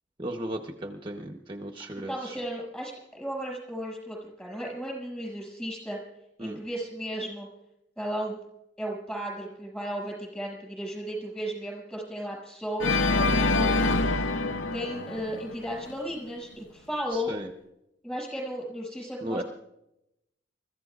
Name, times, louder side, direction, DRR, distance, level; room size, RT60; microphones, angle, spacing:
voice 1, 0.2-2.4 6.4-6.6 17.1-17.5 19.2-19.4, right 1 dB, 25° right, 3 dB, 0.9 m, -35 dB
voice 2, 1.9-6.0 6.4-7.5 8.0-8.4 8.8-13.9 14.7-17.3 18.0-19.4, equal, 5° left, -1 dB, 6.5 m, -35 dB
Organ, 12.8-15.9, left 3 dB, 75° left, 0.7 m, -25 dB
29.0 x 14.5 x 2.5 m, 0.87 s
head